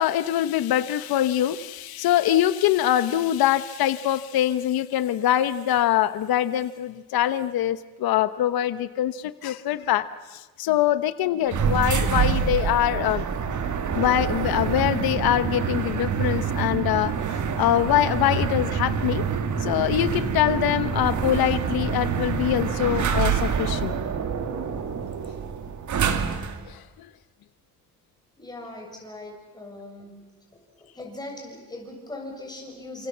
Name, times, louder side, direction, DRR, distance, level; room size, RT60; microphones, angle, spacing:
voice 1, 0.0-13.2 13.9-19.2 19.6-23.9 26.7-27.1, left 12 dB, 90° left, 13 dB, 1.1 m, -24 dB
sound 1, 11.5-26.7, right 6 dB, 55° right, 2.5 m, -26 dB
voice 2, 28.4-30.1 31.0-33.1, left 2 dB, 10° left, 0 dB, 7.4 m, -39 dB
30.0 x 27.0 x 7.4 m, 1.2 s
cardioid pair, 155°, 35 cm